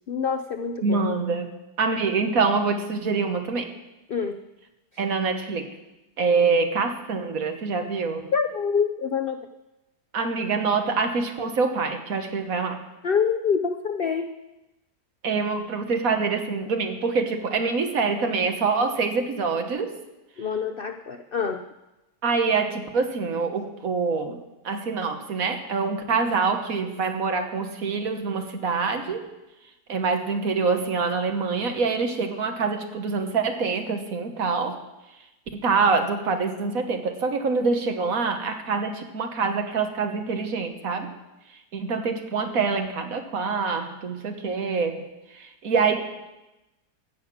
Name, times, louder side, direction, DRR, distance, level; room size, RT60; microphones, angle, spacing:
voice 1, 0.1-1.0 4.1-4.4 8.3-9.4 13.0-14.3 20.4-21.6, left 6 dB, 90° left, 7 dB, 0.5 m, -26 dB
voice 2, 0.8-1.5 1.8-3.7 5.0-5.7 6.2-8.2 10.1-12.8 15.2-19.9 22.2-29.2 29.9-34.8 35.5-41.1 41.7-45.1 45.3-46.0, right 4 dB, 60° right, 5 dB, 1.6 m, -25 dB
14.5 x 6.4 x 8.6 m, 1.0 s
omnidirectional pair, 1.7 m